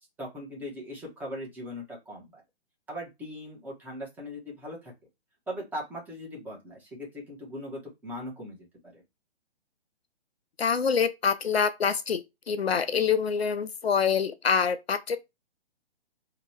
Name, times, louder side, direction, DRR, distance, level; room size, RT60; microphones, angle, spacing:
voice 1, 0.2-2.4 2.9-4.9 5.5-9.0, equal, 5° right, 0.9 m, -39 dB
voice 2, 10.6-15.2, left 6 dB, 65° left, 0.6 m, -26 dB
2.9 x 2.9 x 4.3 m
figure-of-eight pair, 130°, 33 cm